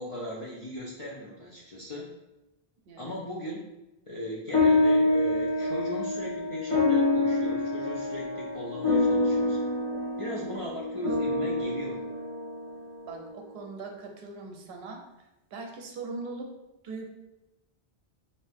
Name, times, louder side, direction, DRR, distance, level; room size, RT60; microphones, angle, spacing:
voice 1, 0.0-2.1 3.0-3.7 4.1-9.6 10.2-12.0, equal, 50° left, -5 dB, 0.4 m, -38 dB
voice 2, 2.9-3.2 13.0-15.0 15.5-16.5 16.8-17.0, right 3 dB, 70° right, 2 dB, 0.8 m, -40 dB
sound 1, 4.5-13.2, left 2 dB, 25° left, 0.9 m, -26 dB
2.7 x 2.6 x 3.3 m, 0.98 s
omnidirectional pair, 1.1 m